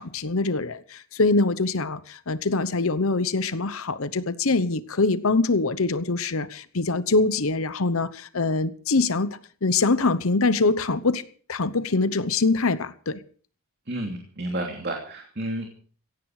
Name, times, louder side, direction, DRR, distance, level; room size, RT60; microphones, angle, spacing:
voice 1, 0.0-11.2 11.5-13.2, left 3 dB, 70° left, 0.9 m, -24 dB
voice 2, 13.9-15.7, right 1 dB, 45° right, 2.8 m, -31 dB
17.0 x 15.0 x 4.9 m
head